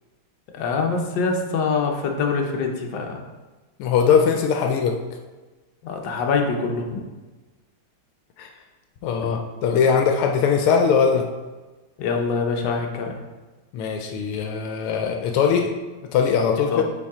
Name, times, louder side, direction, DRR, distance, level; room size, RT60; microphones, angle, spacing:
voice 1, 0.5-3.2 5.8-7.0 12.0-13.2 16.5-16.8, left 4 dB, 65° left, 2 dB, 1.3 m, -24 dB
voice 2, 3.8-4.9 8.4-8.5 9.0-11.2 13.7-15.7 16.1-16.8, left 6 dB, 85° left, 3 dB, 1.5 m, -20 dB
7.1 x 4.8 x 3.6 m, 1.2 s
omnidirectional pair, 2.4 m